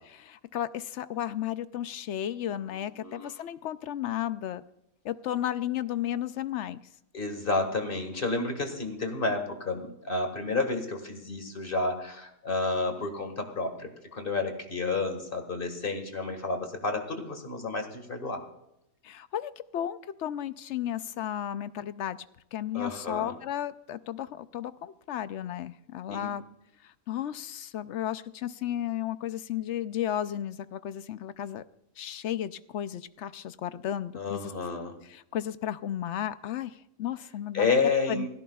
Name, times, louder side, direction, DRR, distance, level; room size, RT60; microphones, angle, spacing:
voice 1, 0.2-4.6 5.0-6.8 19.0-22.2 22.5-26.4 26.8-31.6 32.0-34.4 35.1-37.7 38.1-38.3, left 11 dB, 65° left, 14 dB, 0.8 m, -34 dB
voice 2, 2.7-3.5 7.1-18.4 22.7-23.3 26.1-26.3 34.2-35.0 37.5-38.3, left 3 dB, 40° left, 6 dB, 1.9 m, -30 dB
29.5 x 11.0 x 2.3 m, 0.83 s
omnidirectional pair, 1.5 m